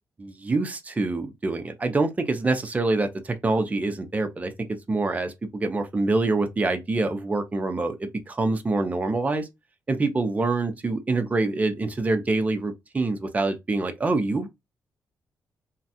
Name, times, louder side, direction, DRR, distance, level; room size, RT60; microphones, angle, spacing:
voice 1, 0.2-4.5 4.9-9.5 9.9-14.5, right 3 dB, 20° right, 0.6 m, -25 dB
3.1 x 2.4 x 2.7 m
cardioid pair, 115°, 7 cm